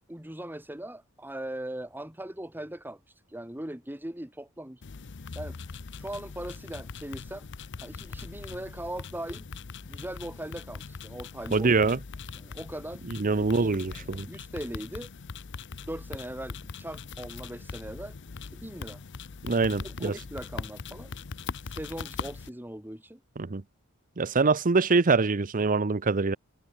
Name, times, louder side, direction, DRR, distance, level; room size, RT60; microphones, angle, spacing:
voice 1, 0.1-4.8 5.4-5.6 6.0-7.5 7.8-9.4 9.8-11.9 12.3-13.0 13.4-15.1 15.9-18.2 18.5-19.0 19.6-21.1 21.6-23.2, right 1 dB, 10° right, 1.7 m, -40 dB
sound 1, 4.8-22.5, left 5 dB, 55° left, 0.7 m, -41 dB
voice 2, 11.5-12.0 13.1-14.3 19.4-20.1 23.4-23.6 24.2-26.4, right 4 dB, 40° right, 0.7 m, -24 dB
head